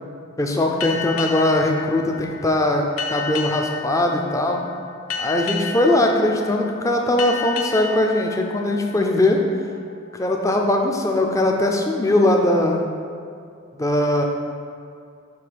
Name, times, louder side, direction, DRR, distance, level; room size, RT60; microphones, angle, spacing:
voice 1, 0.4-4.6 5.2-9.4 10.1-12.8 13.7-14.2, left 1 dB, 15° left, 2 dB, 0.5 m, -20 dB
sound 1, 0.8-10.0, left 6 dB, 85° left, 0.6 m, -32 dB
7.8 x 3.1 x 5.1 m, 2.4 s
head